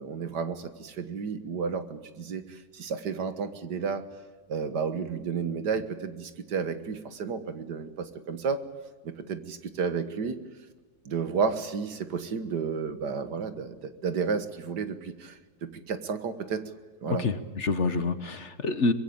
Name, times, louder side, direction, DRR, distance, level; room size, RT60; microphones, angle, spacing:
voice 1, 0.0-4.0 4.5-8.6 9.0-10.4 11.1-16.6 17.0-17.3, right 5 dB, 85° right, 10 dB, 2.1 m, -32 dB
voice 2, 17.1-18.9, left 3 dB, 45° left, 11 dB, 1.5 m, -27 dB
24.0 x 21.5 x 8.7 m, 1.3 s
omnidirectional pair, 1.7 m